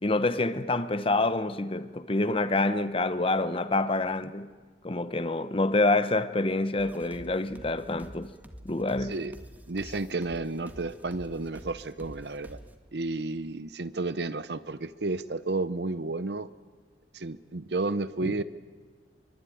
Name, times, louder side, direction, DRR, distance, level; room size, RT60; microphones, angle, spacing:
voice 1, 0.0-4.5 4.8-8.3 8.6-9.2, left 2 dB, 30° left, 0.9 m, -27 dB
sound 1, 6.8-12.7, equal, 10° right, 1.7 m, -48 dB
voice 2, 9.0-9.4 9.7-12.6 12.9-16.5 17.1-18.4, right 3 dB, 65° right, 0.8 m, -32 dB
24.5 x 24.0 x 9.3 m
head